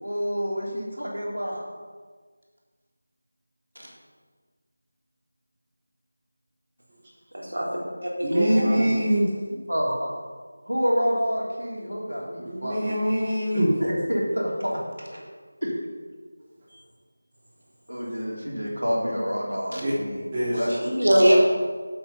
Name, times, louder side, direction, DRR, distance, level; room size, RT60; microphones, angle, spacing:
voice 1, 0.0-1.6 3.8-3.9 8.5-8.9 9.7-10.1 10.7-13.0 13.8-14.7 15.6-15.8 17.9-21.4, equal, 80° right, -3 dB, 3.5 m, -28 dB
voice 2, 7.3-8.8 20.8-21.4, equal, 65° right, -2 dB, 2.8 m, -22 dB
voice 3, 8.2-9.3 12.5-13.7 19.7-19.9 20.3-20.6, equal, 20° right, -8 dB, 2.4 m, -24 dB
8.8 x 7.9 x 5.7 m, 1.5 s
figure-of-eight pair, 165°, 0 cm